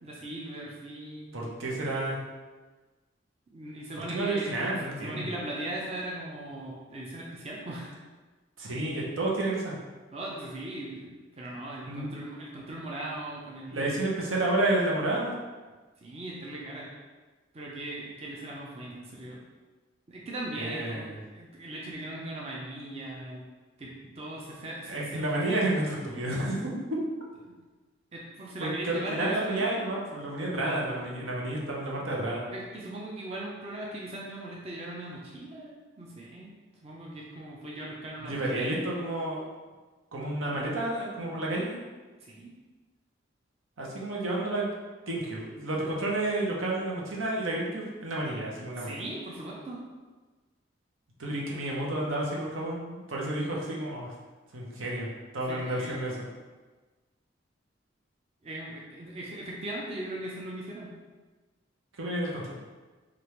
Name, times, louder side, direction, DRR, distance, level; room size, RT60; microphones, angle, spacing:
voice 1, 0.0-1.5 3.5-4.5 5.0-7.9 10.1-13.9 16.0-16.9 17.5-19.4 20.1-21.0 21.3-23.4 23.8-25.2 27.5-27.6 28.1-29.9 32.5-38.8 42.2-42.5 48.8-49.8 55.5-56.2 58.4-61.0, right 1 dB, 30° right, -4 dB, 0.5 m, -39 dB
voice 2, 1.3-2.2 4.1-5.3 8.6-9.7 11.8-12.1 13.7-15.3 20.5-21.2 24.8-27.0 28.6-32.5 38.2-39.5 40.1-41.8 43.8-44.7 45.1-49.0 51.2-54.1 54.5-56.3 62.0-62.5, right 1 dB, 85° right, -3 dB, 0.9 m, -30 dB
3.3 x 2.5 x 4.4 m, 1.3 s
head